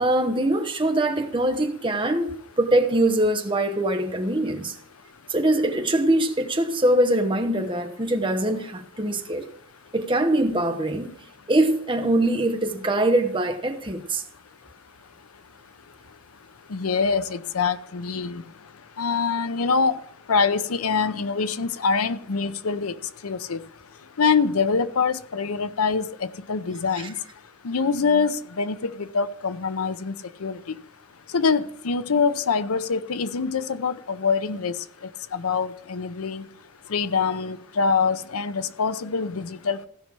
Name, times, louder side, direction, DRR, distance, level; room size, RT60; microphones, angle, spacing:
voice 1, 0.0-4.7 5.3-9.5 9.9-11.2 11.5-14.2, right 1 dB, 25° right, 1.0 m, -23 dB
voice 2, 16.7-18.4 19.0-19.9 20.3-22.9 23.2-23.6 24.2-27.1 27.6-30.1 30.4-30.6 31.3-34.7 35.3-36.4 36.9-39.9, left 5 dB, 90° left, 0.7 m, -24 dB
15.5 x 5.6 x 6.1 m
head